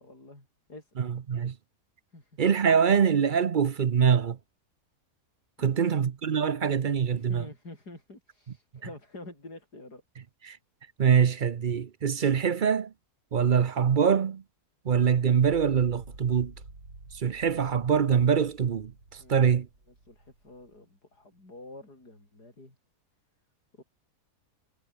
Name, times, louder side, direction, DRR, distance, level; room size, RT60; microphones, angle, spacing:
voice 1, 0.0-0.9 2.1-2.4 5.6-6.0 7.1-10.0 19.2-19.7 20.0-22.8 23.7-23.8, left 2 dB, 75° left, 8.5 m, -48 dB
voice 2, 1.0-1.5 2.4-4.4 5.6-7.4 10.4-10.6 11.0-12.9 13.3-14.4 14.9-16.5 17.2-18.9 19.3-19.7, right 7 dB, 45° right, 0.6 m, -24 dB
sound 1, 15.4-20.7, right 2 dB, 70° right, 5.9 m, -49 dB
omnidirectional pair, 1.7 m